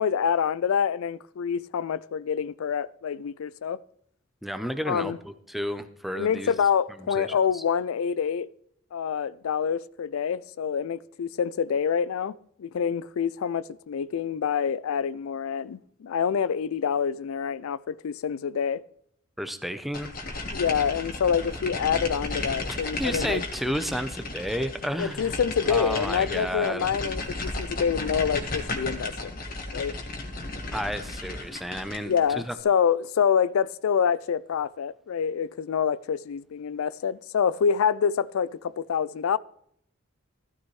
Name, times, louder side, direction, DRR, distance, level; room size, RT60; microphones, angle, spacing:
voice 1, 0.0-3.8 4.9-5.2 6.2-8.5 8.9-18.8 20.5-23.4 25.0-29.3 29.7-30.0 32.0-39.4, left 7 dB, 90° left, 0.4 m, -26 dB
voice 2, 4.4-6.5 7.2-7.6 19.4-20.1 22.7-25.3 25.7-26.9 30.7-32.1 32.5-32.6, equal, ahead, 0.7 m, -32 dB
sound 1, 19.9-32.3, left 2 dB, 45° left, 1.6 m, -34 dB
14.5 x 13.0 x 3.2 m
head